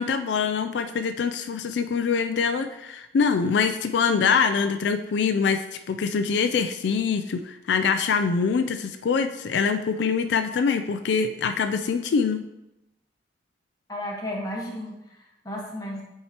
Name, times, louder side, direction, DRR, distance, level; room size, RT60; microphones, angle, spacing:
voice 1, 0.0-12.4, left 5 dB, 80° left, 8 dB, 0.3 m, -24 dB
voice 2, 13.9-16.0, left 1 dB, 20° left, -2 dB, 1.3 m, -34 dB
8.5 x 4.7 x 2.9 m, 0.92 s
head